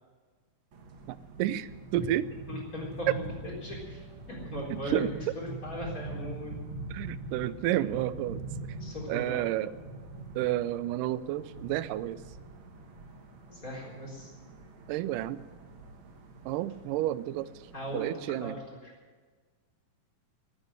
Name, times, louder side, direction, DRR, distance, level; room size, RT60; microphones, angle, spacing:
sound 1, 0.7-18.5, right 3 dB, 50° right, 1.7 m, -43 dB
voice 1, 1.1-2.3 4.7-5.1 6.9-8.4 9.1-9.7 10.4-12.2 14.9-15.4 16.5-17.5 17.9-18.6, right 14 dB, 85° right, 16 dB, 2.2 m, -31 dB
voice 2, 2.5-3.3 3.6-5.0 5.4-6.6 8.7-9.5 13.5-14.3 17.7-18.1 18.4-18.6 18.8-18.9, left 1 dB, 25° left, -2 dB, 4.2 m, -39 dB
15.0 x 9.0 x 9.4 m, 1.4 s
omnidirectional pair, 3.7 m